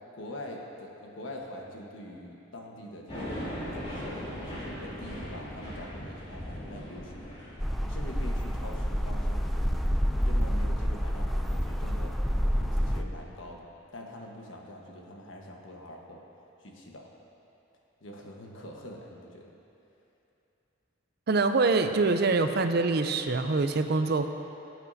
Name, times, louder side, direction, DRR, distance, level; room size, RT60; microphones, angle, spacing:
voice 1, 0.1-3.5 3.7-7.2 7.8-9.8 10.2-12.1 12.6-13.7 13.9-16.2 16.6-17.1 18.0-19.4, left 1 dB, 85° left, 0 dB, 1.3 m, -44 dB
sound 1, 3.1-9.7, equal, 30° left, 2.5 m, -40 dB
sound 2, 7.6-13.0, equal, ahead, 0.3 m, -28 dB
voice 2, 21.3-24.3, right 3 dB, 55° right, 7 dB, 0.5 m, -25 dB
17.5 x 8.1 x 2.7 m, 2.8 s
head